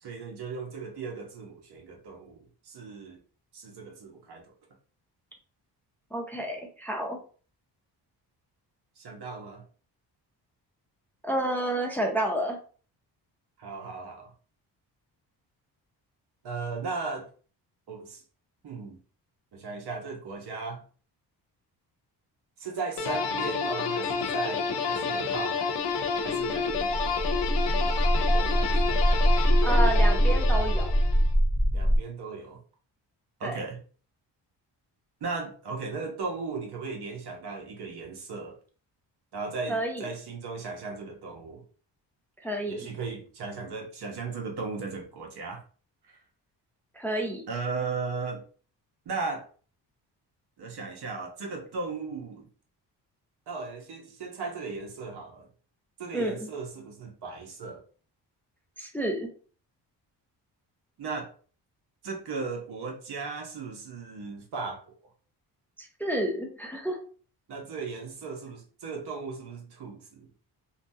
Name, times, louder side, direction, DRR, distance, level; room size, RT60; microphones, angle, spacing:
voice 1, 0.0-3.2 3.5-4.4 9.0-9.6 13.6-14.3 16.4-17.3 17.9-18.2 18.6-19.0 19.5-20.8 22.6-25.8 26.2-27.3 27.7-29.1 31.7-32.6 33.4-33.8 35.2-38.6 39.3-41.6 42.7-45.6 46.1-46.2 47.5-48.4 49.0-49.5 50.6-52.5 53.5-55.5 56.0-57.8 61.0-61.3 62.0-65.0 67.5-70.3, right 4 dB, 65° right, 1.0 m, -37 dB
voice 2, 6.1-7.2 11.2-12.6 29.6-30.9 33.4-33.6 39.7-40.1 42.4-42.8 46.9-47.5 56.1-56.5 58.8-59.3 65.8-67.0, right 1 dB, 5° left, 0.5 m, -30 dB
sound 1, 23.0-31.3, left 5 dB, 80° left, 0.6 m, -29 dB
sound 2, 26.5-32.0, equal, 15° right, 1.4 m, -23 dB
2.8 x 2.3 x 2.7 m
cardioid pair, 75°, 42 cm